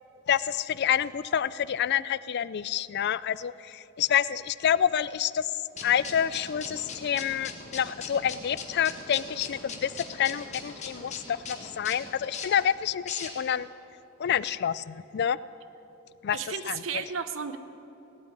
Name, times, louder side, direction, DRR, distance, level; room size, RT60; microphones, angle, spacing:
voice 1, 0.3-5.5 5.8-13.7 14.2-15.4 16.2-16.4 16.7-16.8, left 9 dB, 55° left, 18 dB, 0.4 m, -28 dB
sound 1, 5.7-13.6, left 4 dB, 35° left, 1.6 m, -40 dB
voice 2, 16.3-17.6, right 6 dB, 70° right, 11 dB, 0.9 m, -33 dB
17.5 x 8.5 x 9.6 m, 2.9 s
head